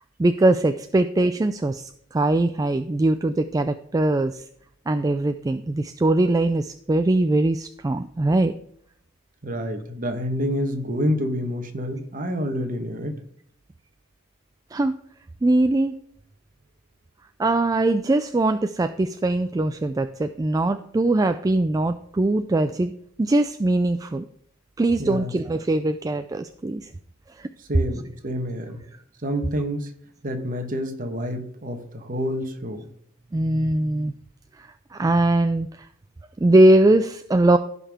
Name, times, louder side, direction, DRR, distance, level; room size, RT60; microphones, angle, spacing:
voice 1, 0.2-4.4 4.9-8.5 14.7-14.9 15.4-16.0 17.4-22.9 23.2-24.2 24.8-26.9 27.4-27.5 33.3-34.1 34.6-35.9 36.4-37.6, right 2 dB, 15° right, 9 dB, 0.3 m, -21 dB
voice 2, 9.4-13.2 25.0-25.3 27.7-28.8 29.2-29.9 30.2-32.9, equal, 40° right, 6 dB, 1.3 m, -28 dB
15.5 x 5.5 x 3.6 m, 0.67 s
head